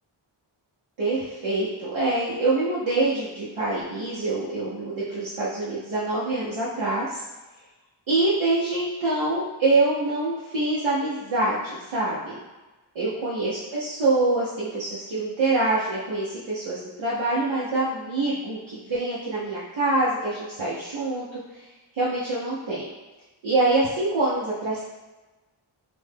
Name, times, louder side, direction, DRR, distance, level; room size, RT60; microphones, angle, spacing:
voice 1, 1.0-7.2 8.1-12.4 12.9-21.4 21.9-22.9 23.4-24.8, right 2 dB, 70° right, -8 dB, 0.8 m, -25 dB
3.0 x 2.2 x 3.3 m, 1.2 s
wide cardioid pair, 85°, 49 cm